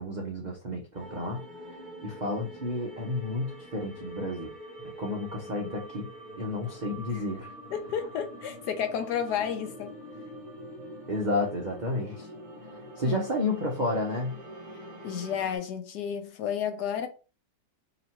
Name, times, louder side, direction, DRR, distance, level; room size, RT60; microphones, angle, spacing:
voice 1, 0.0-1.5 2.0-4.5 5.0-6.1 6.4-7.5 11.1-12.3 13.0-14.4, left 1 dB, 90° right, 0.4 m, -31 dB
sound 1, 0.9-15.6, right 1 dB, 35° right, 0.6 m, -45 dB
voice 2, 7.7-9.9 13.0-13.2 15.0-17.1, left 8 dB, 70° left, 1.1 m, -32 dB
3.0 x 2.9 x 4.1 m
omnidirectional pair, 1.9 m